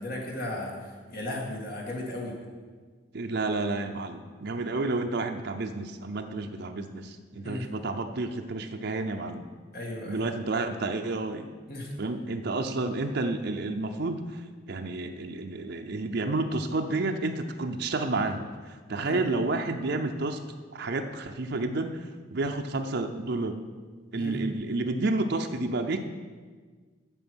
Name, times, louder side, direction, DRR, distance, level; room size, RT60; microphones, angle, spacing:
voice 1, 0.0-2.4 7.4-7.7 9.7-10.2 11.7-11.9 19.0-19.2 24.1-24.4, left 1 dB, 50° left, -1 dB, 2.1 m, -35 dB
voice 2, 3.1-9.5 10.1-11.5 12.0-20.4 20.7-22.0 22.3-23.6 24.1-26.0, right 2 dB, 55° right, 4 dB, 0.6 m, -30 dB
9.0 x 6.6 x 6.2 m, 1.5 s
head